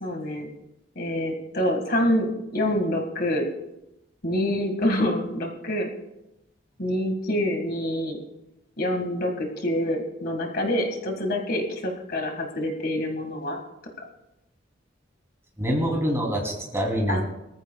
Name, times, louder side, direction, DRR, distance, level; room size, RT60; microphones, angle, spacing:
voice 1, 0.0-0.5 1.0-3.5 4.2-5.9 6.8-8.2 8.8-13.6 14.0-14.1 17.1-17.2, left 1 dB, 55° left, 3 dB, 1.8 m, -26 dB
voice 2, 15.6-17.2, equal, 15° right, 0 dB, 2.9 m, -25 dB
23.5 x 14.0 x 2.3 m, 0.90 s
head